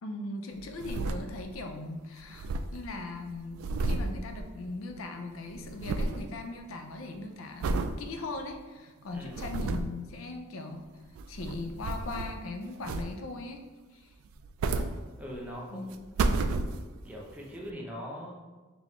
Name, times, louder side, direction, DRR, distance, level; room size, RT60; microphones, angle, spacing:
voice 1, 0.0-10.9 11.3-13.6 13.9-14.1 15.7-15.9, left 2 dB, 75° left, 5 dB, 0.5 m, -39 dB
sound 1, 0.6-1.7 1.9-2.0 2.2-5.0 5.3-6.3 6.7-7.0 7.6-8.0 8.5-8.6 9.1-10.0 11.0-12.5 12.8-13.4 14.3-15.5 15.9-17.1 17.7-17.8, right 3 dB, 80° right, 0.3 m, -32 dB
voice 2, 9.1-9.6 15.2-16.2 17.0-18.3, equal, 5° right, -3 dB, 0.6 m, -42 dB
4.1 x 3.3 x 3.0 m, 1.3 s
head